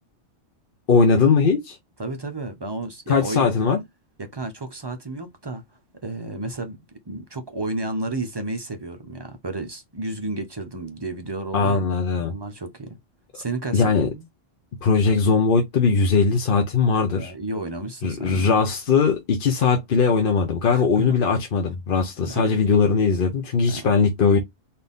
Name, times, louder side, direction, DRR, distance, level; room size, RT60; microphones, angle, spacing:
voice 1, 0.9-1.8 3.1-3.8 11.5-12.3 13.7-14.1 14.8-17.3 18.0-24.4, left 5 dB, 50° left, 0.8 m, -20 dB
voice 2, 2.0-3.5 4.2-5.6 6.0-6.8 7.1-11.9 12.3-13.0 13.3-14.2 17.2-18.5 20.7-21.2 22.3-22.6 23.7-23.9, right 2 dB, 25° right, 0.6 m, -32 dB
4.2 x 2.6 x 3.5 m
omnidirectional pair, 1.3 m